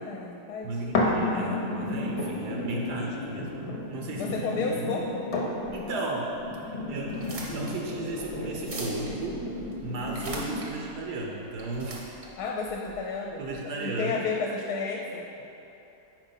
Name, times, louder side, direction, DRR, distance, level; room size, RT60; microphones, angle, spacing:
voice 1, 0.0-1.2 4.2-5.3 12.4-15.3, left 4 dB, 75° left, 0 dB, 1.0 m, -32 dB
voice 2, 0.6-3.5 3.9-4.5 4.7-4.9 5.7-6.3 6.7-7.2 7.5-9.4 9.8-12.1 13.4-14.3, right 2 dB, 80° right, -1 dB, 1.3 m, -35 dB
sound 1, 0.9-10.9 11.5-11.6, left 2 dB, 50° left, 0.9 m, -32 dB
sound 2, 7.1-13.5, right 1 dB, 40° right, 0.7 m, -42 dB
5.1 x 4.5 x 5.6 m, 3.0 s
omnidirectional pair, 1.8 m